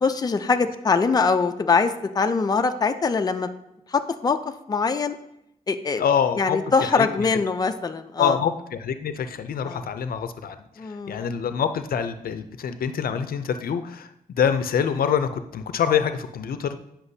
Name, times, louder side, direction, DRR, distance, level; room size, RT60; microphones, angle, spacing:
voice 1, 0.0-3.5 3.9-4.4 4.7-5.2 5.7-6.0 6.4-8.4 9.6-9.8 10.8-11.3, left 4 dB, 25° left, 7 dB, 0.4 m, -23 dB
voice 2, 6.0-7.3 8.2-10.6 11.1-14.1 14.4-16.8, left 7 dB, 80° left, 10 dB, 0.5 m, -25 dB
9.7 x 5.8 x 2.7 m, 0.83 s
wide cardioid pair, 105°, 15 cm